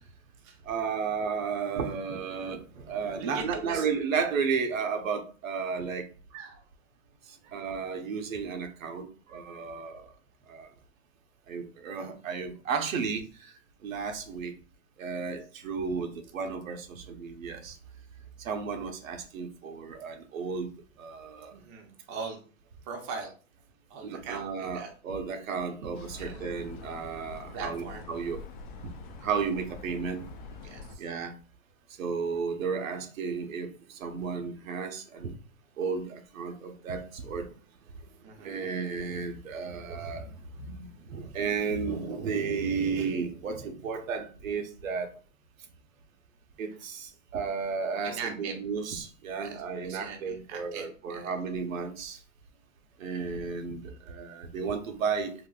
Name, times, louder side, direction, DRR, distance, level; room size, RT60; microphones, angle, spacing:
voice 1, 0.7-6.0 7.5-10.1 10.5-10.7 11.5-13.5 13.8-14.5 15.0-17.8 18.4-20.7 21.0-21.5 24.0-27.8 28.1-28.4 28.8-28.9 29.2-30.2 31.0-31.3 32.0-35.3 35.8-37.5 38.4-45.1 46.6-52.2 53.0-55.3, right 5 dB, 85° right, 0.8 m, -33 dB
voice 2, 3.2-3.9 6.3-6.7 7.4-7.6 12.0-12.1 21.5-22.4 22.8-23.3 23.9-24.9 26.2-26.4 27.5-28.1 30.6-31.1 38.2-38.6 48.0-48.6 49.4-51.3, right 5 dB, 25° right, 0.6 m, -41 dB
sound 1, 25.9-31.0, left 3 dB, 40° left, 0.5 m, -45 dB
3.9 x 2.6 x 2.3 m
hypercardioid pair, 145°, 39 cm